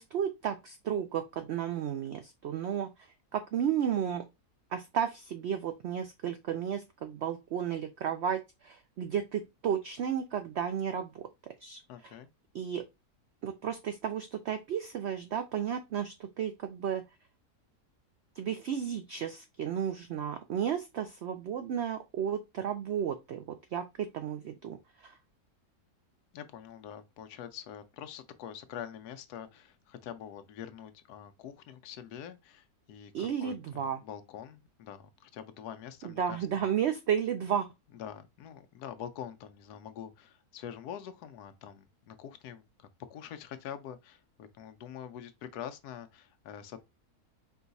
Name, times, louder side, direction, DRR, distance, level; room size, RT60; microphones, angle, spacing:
voice 1, 0.0-2.9 3.3-4.2 4.7-11.2 11.6-12.1 12.5-12.8 13.4-17.0 18.4-23.4 23.7-24.8 25.0-25.1 33.1-34.0 36.0-37.7, right 8 dB, 85° right, 0.5 m, -33 dB
voice 2, 11.9-12.3 26.3-36.5 37.9-46.8, left 9 dB, 80° left, 1.1 m, -45 dB
4.7 x 2.3 x 3.9 m
omnidirectional pair, 1.7 m